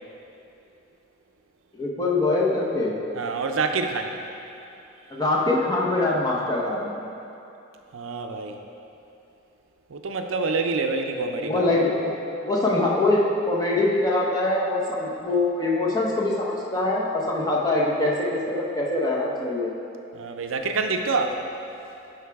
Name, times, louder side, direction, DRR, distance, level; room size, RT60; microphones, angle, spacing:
voice 1, 1.7-3.0 5.1-7.1 11.4-12.1 12.4-19.7, left 2 dB, 20° left, -4 dB, 0.9 m, -23 dB
voice 2, 3.2-4.1 7.9-8.6 9.9-11.7 20.1-21.4, right 4 dB, 80° right, 5 dB, 0.5 m, -26 dB
11.0 x 4.6 x 3.5 m, 2.8 s
head